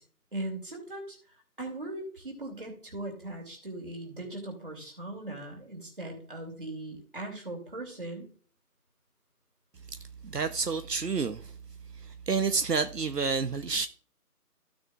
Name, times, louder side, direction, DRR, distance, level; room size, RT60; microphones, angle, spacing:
voice 1, 0.3-1.2 1.6-8.3, right 1 dB, 35° right, 2.8 m, -39 dB
voice 2, 10.2-11.5 12.0-13.9, right 5 dB, 80° right, 0.9 m, -29 dB
15.5 x 6.2 x 2.4 m
figure-of-eight pair, 175°, 48 cm